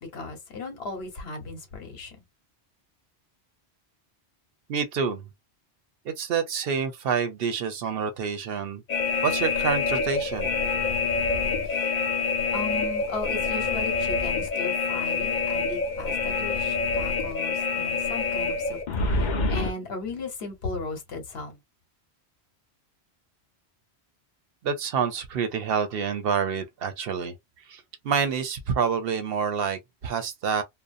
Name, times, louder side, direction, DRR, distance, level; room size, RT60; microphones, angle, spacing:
voice 1, 0.1-2.2 11.6-11.9 12.5-18.8 19.1-21.6, left 3 dB, 70° left, 1.1 m, -36 dB
voice 2, 4.7-5.3 6.0-8.8 9.2-10.5 24.6-27.4 27.7-30.6, right 6 dB, 65° right, 0.7 m, -27 dB
sound 1, 8.9-19.7, left 4 dB, 50° left, 0.7 m, -26 dB
2.6 x 2.0 x 2.4 m
omnidirectional pair, 1.1 m